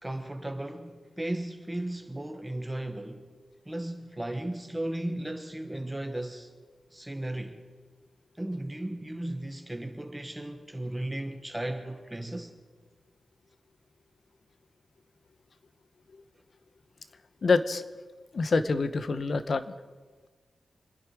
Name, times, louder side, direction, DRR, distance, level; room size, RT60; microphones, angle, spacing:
voice 1, 0.0-3.3 3.6-6.5 6.9-7.6 8.4-12.5, right 1 dB, 10° right, 1.4 m, -35 dB
voice 2, 17.4-17.8 18.3-19.6, left 4 dB, 55° left, 0.9 m, -26 dB
26.5 x 10.0 x 4.8 m
wide cardioid pair, 110°, 0 cm